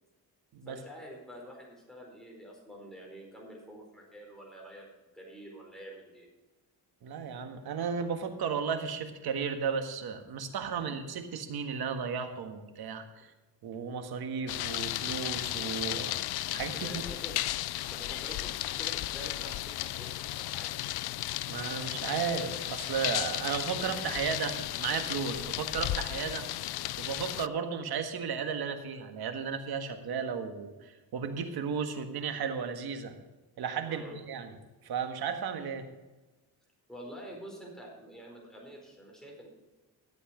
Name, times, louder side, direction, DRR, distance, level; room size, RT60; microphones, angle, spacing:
voice 1, 0.7-6.3 16.7-17.4 17.8-20.8 33.9-34.2 36.9-39.5, equal, ahead, -1 dB, 4.4 m, -47 dB
voice 2, 7.0-13.3 13.6-16.2 16.5-17.0 21.5-26.4 27.0-33.1 33.6-34.5 34.8-35.9, right 6 dB, 70° right, 6 dB, 1.7 m, -34 dB
sound 1, 14.5-27.5, left 15 dB, 70° left, 0.5 m, -34 dB
14.0 x 8.2 x 5.1 m, 1.2 s
cardioid pair, 120°, 39 cm